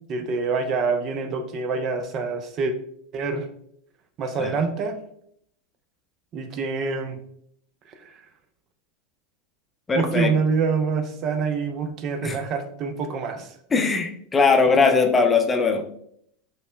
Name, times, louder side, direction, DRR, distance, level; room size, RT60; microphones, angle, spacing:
voice 1, 0.1-2.7 3.1-3.5 4.2-5.0 6.3-7.2 8.0-8.1 9.9-13.5, right 4 dB, 40° right, 8 dB, 0.5 m, -26 dB
voice 2, 9.9-10.3 12.2-12.4 13.7-15.8, left 4 dB, 20° left, 5 dB, 0.5 m, -20 dB
5.4 x 3.1 x 2.2 m, 0.69 s
hypercardioid pair, 110°, 0 cm